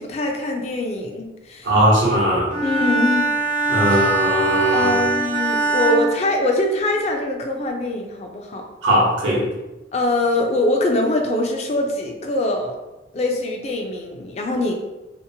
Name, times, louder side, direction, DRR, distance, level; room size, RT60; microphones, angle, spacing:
voice 1, 0.0-1.7 2.6-3.4 3.9-4.1 4.7-8.7 9.9-12.8 13.1-14.8, left 2 dB, 35° left, 2 dB, 0.3 m, -23 dB
voice 2, 1.6-2.5 3.7-4.9 8.8-9.5, equal, 90° right, -4 dB, 0.9 m, -18 dB
Bowed string instrument, 2.5-7.0, right 3 dB, 45° right, 0.4 m, -22 dB
2.7 x 2.1 x 2.7 m, 1.0 s
head